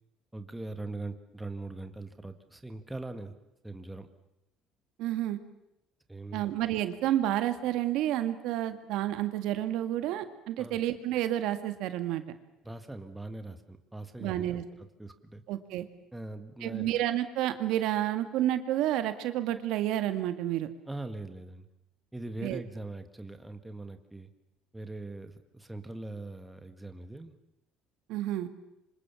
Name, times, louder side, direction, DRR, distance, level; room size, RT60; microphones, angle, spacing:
voice 1, 0.3-3.3 3.6-4.1 6.1-6.4 10.6-10.8 12.6-14.6 15.0-15.4 16.1-16.9 20.9-21.7 22.1-24.3 24.7-27.3, right 2 dB, 5° right, 7 dB, 1.8 m, -41 dB
voice 2, 5.0-5.4 6.3-12.2 14.2-14.6 15.5-15.9 16.6-20.7 22.4-22.6 28.1-28.5, right 13 dB, 70° right, 9 dB, 2.1 m, -30 dB
27.0 x 26.0 x 7.2 m, 0.86 s
cardioid pair, 145°, 0 cm